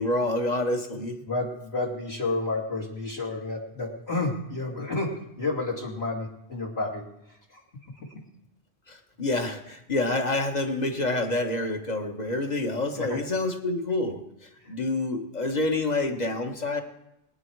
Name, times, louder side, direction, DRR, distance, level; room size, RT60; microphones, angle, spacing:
voice 1, 0.0-1.2 8.9-14.2 14.7-16.8, left 2 dB, 35° left, 5 dB, 1.5 m, -27 dB
voice 2, 0.9-8.2 12.9-13.2 14.6-14.7, left 2 dB, 60° left, -2 dB, 2.8 m, -31 dB
23.0 x 9.4 x 4.7 m, 0.89 s
omnidirectional pair, 1.2 m